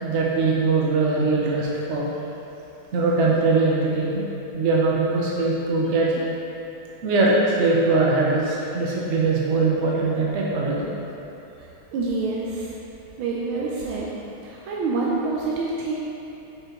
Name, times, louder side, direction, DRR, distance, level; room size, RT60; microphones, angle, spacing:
voice 1, 0.0-2.1 2.9-4.3 4.5-6.1 7.0-10.9, right 3 dB, 65° right, -4 dB, 0.7 m, -21 dB
voice 2, 11.9-12.7 13.2-14.1 14.4-15.9, right 3 dB, 85° right, -5 dB, 1.5 m, -26 dB
7.7 x 5.5 x 3.0 m, 2.9 s
omnidirectional pair, 2.2 m